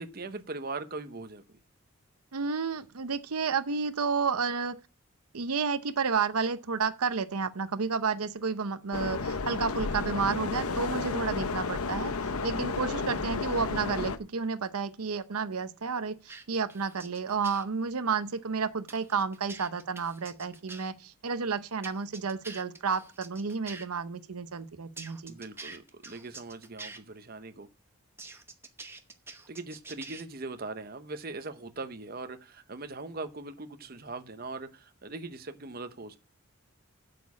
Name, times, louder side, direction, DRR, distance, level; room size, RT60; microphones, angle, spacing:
voice 1, 0.0-1.6 25.3-27.7 29.5-36.2, right 3 dB, 40° right, 0.8 m, -40 dB
voice 2, 2.3-4.8 5.3-25.3, right 5 dB, 90° right, 0.7 m, -31 dB
sound 1, 8.9-14.2, left 4 dB, 85° left, 0.9 m, -32 dB
sound 2, 16.3-17.6 18.9-20.9 21.8-23.8 25.0-27.0 28.2-30.2, right 3 dB, 10° right, 0.9 m, -45 dB
8.0 x 6.9 x 8.5 m
head